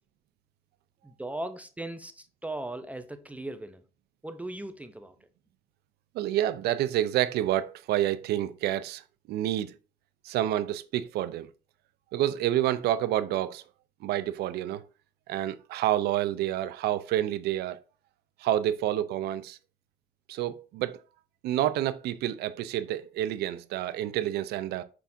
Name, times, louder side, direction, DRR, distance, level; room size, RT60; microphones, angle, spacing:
voice 1, 1.0-3.8 4.2-5.1, right 1 dB, 10° right, 0.5 m, -38 dB
voice 2, 6.1-9.0 9.3-9.7 10.2-11.5 12.1-13.6 14.0-14.8 15.3-17.8 18.4-19.6 20.3-21.0 21.4-24.8, right 12 dB, 75° right, 0.5 m, -28 dB
5.9 x 3.5 x 2.5 m
cardioid pair, 110°, 17 cm